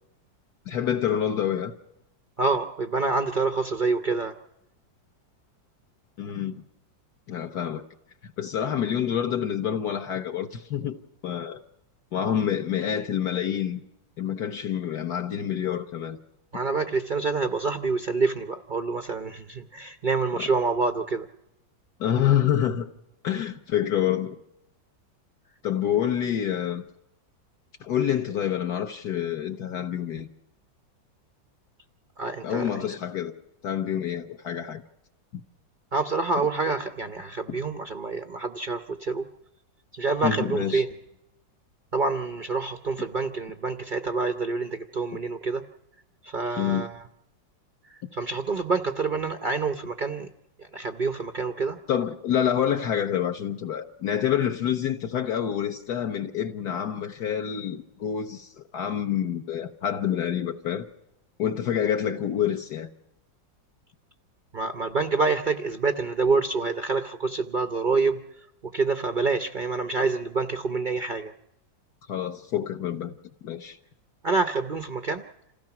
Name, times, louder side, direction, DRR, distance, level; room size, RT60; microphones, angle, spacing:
voice 1, 0.7-1.7 6.2-6.6 7.3-7.8 8.2-11.6 12.1-13.8 14.2-16.2 20.4-20.5 22.0-22.9 23.2-24.4 25.6-26.8 27.8-30.3 32.4-33.4 33.6-34.8 35.3-35.4 40.2-40.8 46.6-46.9 48.0-48.1 51.9-60.9 61.4-62.9 72.1-73.1 73.4-73.8, left 9 dB, 60° left, 1.3 m, -27 dB
voice 2, 2.4-4.3 16.5-21.3 32.2-32.9 35.9-39.2 39.9-40.9 41.9-45.6 46.2-47.0 47.9-50.3 50.6-51.8 64.5-68.2 68.6-71.3 74.2-75.2, right 4 dB, 60° right, 0.5 m, -27 dB
27.0 x 16.0 x 5.9 m
omnidirectional pair, 2.1 m